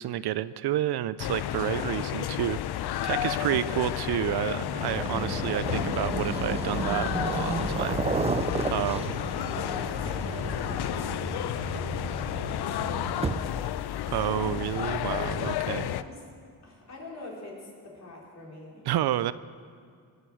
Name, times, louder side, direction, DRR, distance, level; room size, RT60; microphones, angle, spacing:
voice 1, 0.0-8.0 8.7-9.0 14.1-15.9 18.9-19.3, right 13 dB, 70° right, 16 dB, 0.5 m, -30 dB
sound 1, 1.2-16.0, left 11 dB, 70° left, 0.6 m, -31 dB
sound 2, 4.6-13.7, right 5 dB, 15° right, 0.3 m, -33 dB
voice 2, 8.6-14.4 15.3-16.2 16.6-18.8, left 2 dB, 40° left, -4 dB, 4.9 m, -45 dB
21.5 x 8.1 x 7.7 m, 2.3 s
cardioid pair, 100°, 40 cm